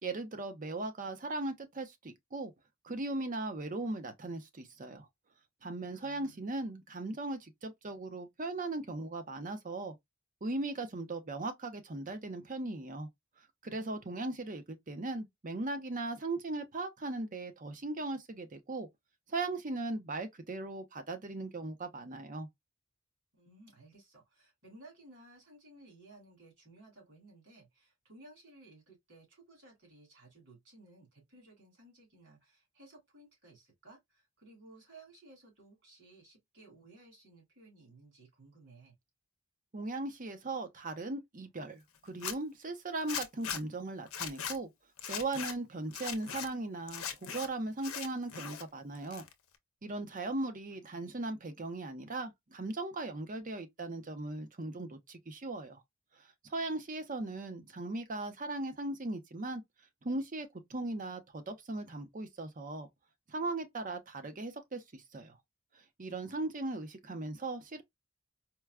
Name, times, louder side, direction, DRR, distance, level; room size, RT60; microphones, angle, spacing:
voice 1, 0.0-2.5 2.8-5.1 5.6-9.9 10.4-13.1 13.6-18.9 19.3-22.5 39.7-44.7 45.1-49.2 49.8-55.8 56.2-59.6 60.0-62.9 63.3-65.4 66.0-67.8, right 2 dB, 40° right, 0.7 m, -38 dB
voice 2, 5.9-6.4 23.3-38.9 51.0-51.3, right 2 dB, 60° right, 2.5 m, -58 dB
Zipper (clothing), 42.1-42.3 43.1-43.6 44.1-44.6 45.0-45.5 45.9-46.5 46.9-47.5 47.8-48.6 48.9-49.6, left 8 dB, 85° left, 0.7 m, -39 dB
4.5 x 2.2 x 2.2 m
head